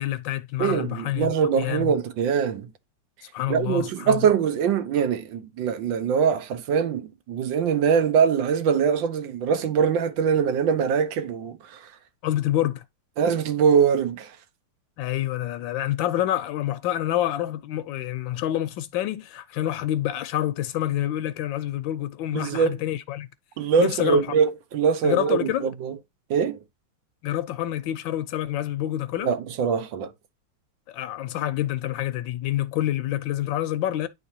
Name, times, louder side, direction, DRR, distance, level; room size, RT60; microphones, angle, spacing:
voice 1, 0.0-1.9 3.2-4.3 12.2-12.8 15.0-23.3 23.8-24.3 25.0-25.7 27.2-29.3 30.9-34.1, left 13 dB, 85° left, 1.3 m, -27 dB
voice 2, 0.6-2.7 3.5-11.9 13.2-14.4 22.3-22.8 23.6-26.0 26.3-26.6 29.2-30.1, right 7 dB, 85° right, 1.5 m, -23 dB
9.8 x 3.8 x 2.7 m
omnidirectional pair, 2.0 m